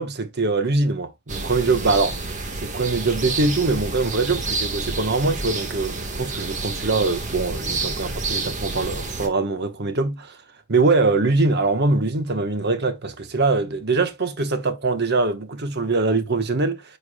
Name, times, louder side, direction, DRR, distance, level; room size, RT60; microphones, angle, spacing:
voice 1, 0.0-2.2 2.6-10.4 10.7-16.8, right 3 dB, 55° right, 1.1 m, -23 dB
sound 1, 1.3-9.3, right 3 dB, 35° right, 1.4 m, -29 dB
9.9 x 4.6 x 2.2 m
head